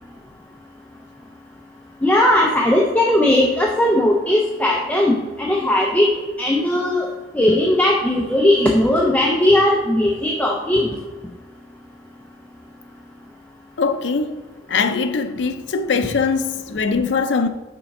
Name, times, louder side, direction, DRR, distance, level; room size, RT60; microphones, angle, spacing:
voice 1, 2.0-6.1 6.4-7.1 7.3-10.9, left 1 dB, 10° left, 0.6 m, -17 dB
voice 2, 13.8-14.4 14.7-17.5, left 5 dB, 70° left, 0.5 m, -21 dB
7.1 x 4.3 x 5.3 m
head